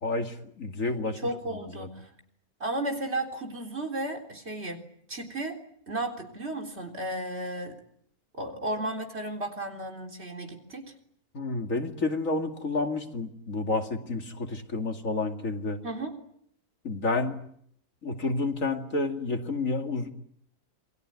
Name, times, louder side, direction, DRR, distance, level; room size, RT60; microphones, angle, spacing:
voice 1, 0.0-1.2 1.8-1.9 11.3-15.8 16.8-17.4 18.0-20.1, left 3 dB, 65° left, 4 dB, 2.8 m, -30 dB
voice 2, 1.2-2.1 2.6-4.8 5.1-5.6 5.9-7.8 8.3-10.9 15.8-16.2, right 1 dB, 45° right, 4 dB, 4.1 m, -34 dB
28.0 x 21.5 x 9.6 m, 0.71 s
omnidirectional pair, 1.5 m